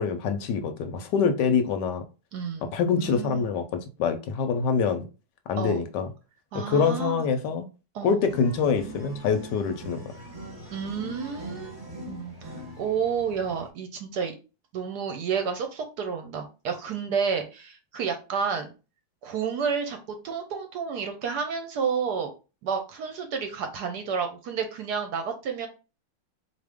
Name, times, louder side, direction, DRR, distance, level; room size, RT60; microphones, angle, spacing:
voice 1, 0.0-2.0 2.7-5.1 5.5-6.1 6.5-7.7 8.0-10.1, left 6 dB, 75° left, 8 dB, 1.1 m, -25 dB
voice 2, 2.3-3.5 5.6-5.8 6.5-7.3 7.9-8.2 10.7-11.8 12.0-14.3 14.7-18.7 19.2-22.3 22.6-25.7, right 6 dB, 70° right, 6 dB, 1.1 m, -30 dB
sound 1, 8.3-13.7, equal, 30° right, 1.0 m, -41 dB
4.1 x 2.9 x 3.4 m, 0.32 s
omnidirectional pair, 2.1 m